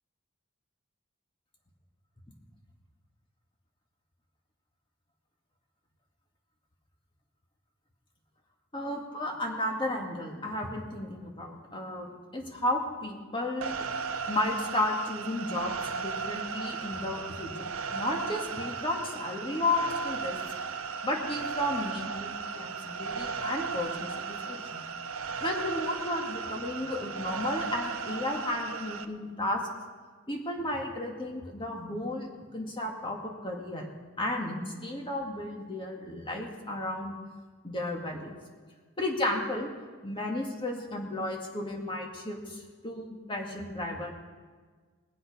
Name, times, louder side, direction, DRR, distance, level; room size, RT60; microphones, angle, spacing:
voice 1, 8.7-13.9 14.3-20.4 21.0-24.1 24.5-24.8 25.4-29.6 30.3-33.9 34.2-37.2 37.6-38.4 39.0-39.7 40.0-44.1, left 1 dB, 25° left, 1 dB, 2.0 m, -33 dB
sound 1, 13.6-29.0, right 5 dB, 70° right, 0.7 m, -36 dB
21.0 x 7.7 x 5.4 m, 1.5 s
head